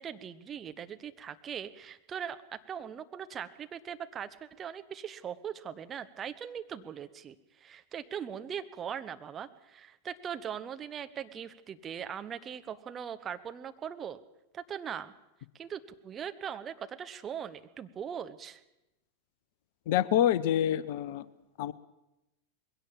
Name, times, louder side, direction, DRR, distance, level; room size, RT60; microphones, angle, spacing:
voice 1, 0.0-14.2 14.5-15.1 15.5-18.6, right 8 dB, 25° right, 10 dB, 1.1 m, -40 dB
voice 2, 19.9-21.2 21.6-21.7, left 11 dB, 50° left, 18 dB, 0.8 m, -26 dB
21.5 x 17.0 x 7.2 m, 0.93 s
figure-of-eight pair, 90°, 0 cm